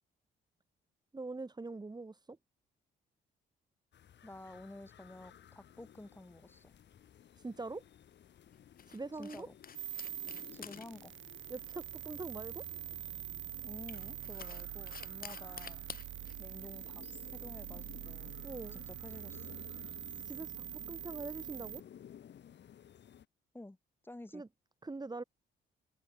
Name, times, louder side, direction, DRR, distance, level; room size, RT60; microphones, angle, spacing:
voice 1, 1.1-2.4 7.4-7.8 8.9-9.5 11.5-12.6 18.4-18.8 20.3-21.8 24.3-24.5 24.8-25.2, right 3 dB, 20° right, 3.5 m, -43 dB
sound 1, 3.9-23.3, left 9 dB, 60° left, 2.9 m, -56 dB
voice 2, 4.2-6.7 9.2-9.6 10.5-11.1 13.6-15.9 16.4-17.0 17.3-18.3 18.7-19.6 23.5-23.8 24.0-24.4, left 1 dB, 10° left, 5.3 m, -51 dB
sound 2, 6.6-19.2, left 7 dB, 45° left, 2.7 m, -54 dB
sound 3, 9.7-21.8, right 13 dB, 75° right, 2.5 m, -45 dB
cardioid pair, 90°, 20 cm